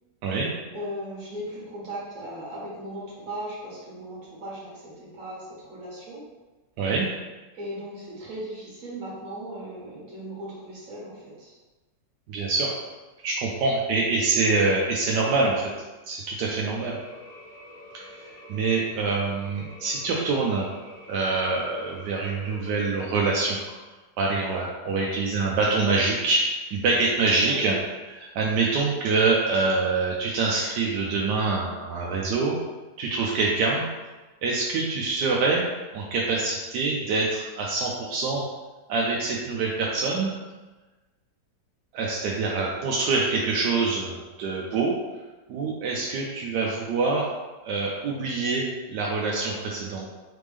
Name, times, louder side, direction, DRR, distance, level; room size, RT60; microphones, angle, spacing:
voice 1, 0.7-6.2 7.5-11.6 25.0-25.1 27.4-27.7 42.3-42.5, right 1 dB, 50° right, -6 dB, 1.9 m, -37 dB
voice 2, 12.3-12.7 13.2-15.7 16.0-17.0 18.5-20.7 21.1-23.6 24.2-27.7 28.1-32.6 33.0-33.9 34.4-35.7 35.9-38.5 38.9-40.3 41.9-44.9 45.5-47.3 47.6-50.1, right 3 dB, 75° right, -3 dB, 1.2 m, -25 dB
sound 1, 16.6-23.4, left 2 dB, 65° left, 1.7 m, -47 dB
4.1 x 3.4 x 3.4 m, 1.2 s
omnidirectional pair, 1.9 m